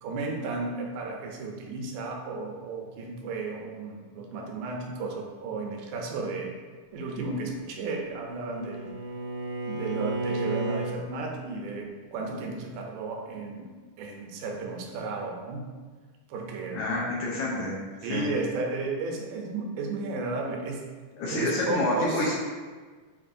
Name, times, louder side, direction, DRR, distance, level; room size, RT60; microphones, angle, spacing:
voice 1, 0.0-6.5 6.9-9.0 9.7-13.7 14.0-15.7 16.3-16.8 18.0-20.8 21.3-22.3, right 3 dB, 85° right, 1 dB, 2.3 m, -33 dB
Bowed string instrument, 7.6-11.0, right 2 dB, 65° right, 1.1 m, -33 dB
voice 2, 16.7-18.3 21.2-22.4, left 2 dB, 75° left, -5 dB, 1.8 m, -28 dB
6.7 x 2.9 x 2.5 m, 1.5 s
omnidirectional pair, 3.8 m